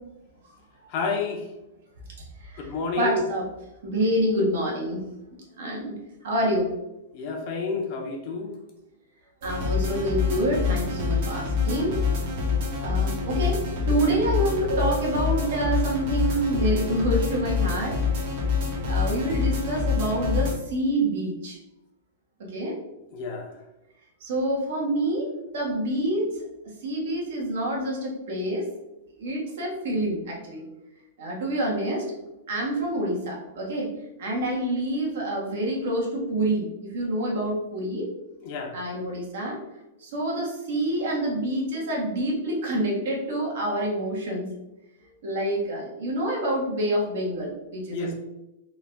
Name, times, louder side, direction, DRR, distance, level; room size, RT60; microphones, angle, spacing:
voice 1, 0.9-1.5 2.6-3.2 7.1-8.6 23.1-23.5 38.4-38.7 47.9-48.1, left 4 dB, 40° left, 2 dB, 0.8 m, -29 dB
voice 2, 2.4-3.5 3.8-5.0 5.6-5.9 6.2-6.7 9.4-12.0 12.8-13.6 13.9-18.0 18.9-21.6 22.4-22.8 24.2-26.4 26.8-28.7 29.2-30.6 31.2-32.1 32.5-33.9 34.2-38.1 38.7-39.6 40.0-44.5 45.2-48.1, right 1 dB, 70° right, -2 dB, 1.5 m, -27 dB
sound 1, 9.4-20.6, left 5 dB, 50° right, 1.2 m, -26 dB
3.9 x 2.6 x 3.4 m, 0.95 s
hypercardioid pair, 150°, 0 cm